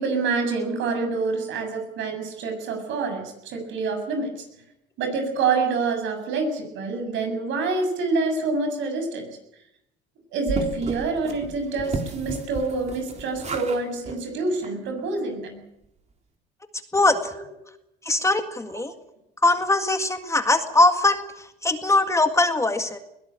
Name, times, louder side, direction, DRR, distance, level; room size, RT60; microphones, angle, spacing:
voice 1, 0.0-4.4 5.0-9.3 10.3-15.6, right 4 dB, 65° right, 6 dB, 7.1 m, -27 dB
sound 1, 10.5-13.8 14.1-14.2 14.6-14.7 15.0-15.1, right 3 dB, 30° right, 3.5 m, -33 dB
voice 2, 16.9-17.3 18.0-18.9 19.4-23.0, left 2 dB, 15° left, 7 dB, 1.9 m, -21 dB
21.5 x 17.0 x 9.0 m, 0.82 s
supercardioid pair, 100°, 21 cm